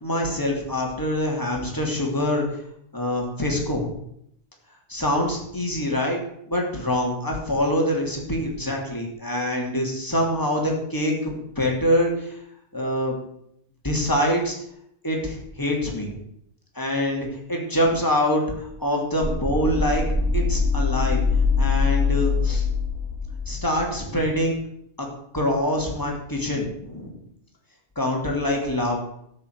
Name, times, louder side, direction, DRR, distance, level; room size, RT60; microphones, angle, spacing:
voice 1, 0.0-2.4 2.9-3.9 4.9-6.2 6.5-12.4 12.7-13.2 13.8-14.6 15.0-16.2 16.7-20.0 20.3-21.2 21.6-22.6 23.5-24.6 25.0-25.1 25.3-27.2 28.0-29.0, left 1 dB, 15° left, 0 dB, 3.0 m, -25 dB
sound 1, 19.2-24.1, left 4 dB, ahead, 2.1 m, -23 dB
13.5 x 6.3 x 8.1 m, 0.73 s
omnidirectional pair, 1.2 m